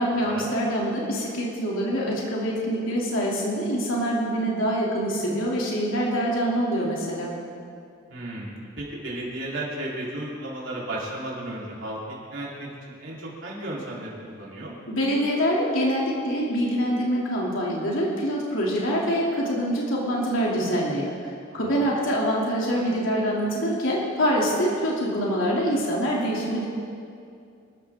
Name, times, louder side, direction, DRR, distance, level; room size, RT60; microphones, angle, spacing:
voice 1, 0.0-7.3 14.9-26.7, equal, 75° left, -4 dB, 3.0 m, -25 dB
voice 2, 8.1-12.0 12.3-14.7 21.5-21.9, right 1 dB, 65° right, -6 dB, 3.9 m, -34 dB
26.0 x 13.5 x 3.7 m, 2.4 s
head